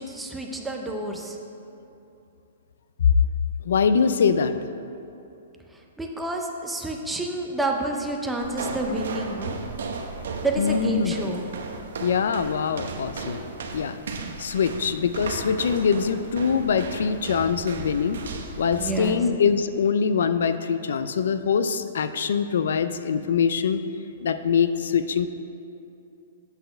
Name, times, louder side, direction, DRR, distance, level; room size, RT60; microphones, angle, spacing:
voice 1, 0.0-1.4 5.7-9.6 10.4-11.4 18.8-19.2, right 2 dB, 5° right, 1 dB, 0.4 m, -29 dB
voice 2, 3.6-4.5 10.6-11.1 12.0-13.4 13.7-14.0 14.4-18.2 18.6-23.8 24.2-25.3, left 6 dB, 65° left, 11 dB, 0.3 m, -23 dB
sound 1, 8.4-19.2, right 4 dB, 65° right, 0.7 m, -35 dB
8.0 x 4.1 x 6.4 m, 2.7 s
hypercardioid pair, 180°, 0 cm